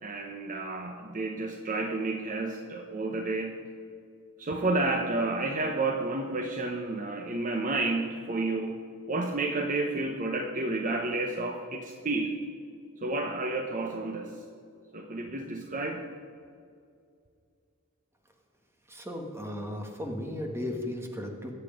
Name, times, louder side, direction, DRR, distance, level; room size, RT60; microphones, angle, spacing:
voice 1, 0.0-3.5 4.4-8.8 9.1-12.3 13.0-14.4 14.9-16.0, right 2 dB, 35° right, 3 dB, 1.0 m, -31 dB
voice 2, 18.9-21.5, left 1 dB, 10° right, 2 dB, 1.7 m, -35 dB
22.0 x 8.3 x 5.2 m, 2.3 s
head